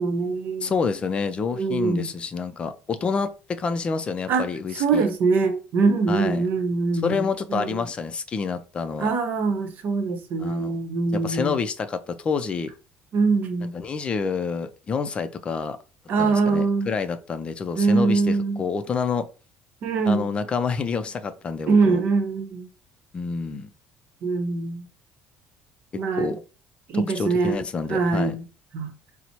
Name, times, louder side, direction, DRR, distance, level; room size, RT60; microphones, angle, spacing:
voice 1, 0.0-0.8 1.5-2.1 4.3-4.5 4.7-7.8 9.0-11.6 13.1-13.7 16.1-16.9 17.7-18.6 19.8-20.4 21.7-22.7 24.2-24.8 26.0-26.3 26.9-27.6 27.9-28.4 28.7-28.9, right 4 dB, 55° right, 0.8 m, -23 dB
voice 2, 0.6-5.1 6.1-6.4 7.0-9.1 10.4-10.7 11.1-12.7 13.7-15.8 16.2-18.2 18.6-19.3 20.1-22.0 23.1-23.7 25.9-26.4 26.9-28.3, left 5 dB, 30° left, 0.4 m, -28 dB
4.2 x 2.0 x 2.8 m
cardioid pair, 125°, 4 cm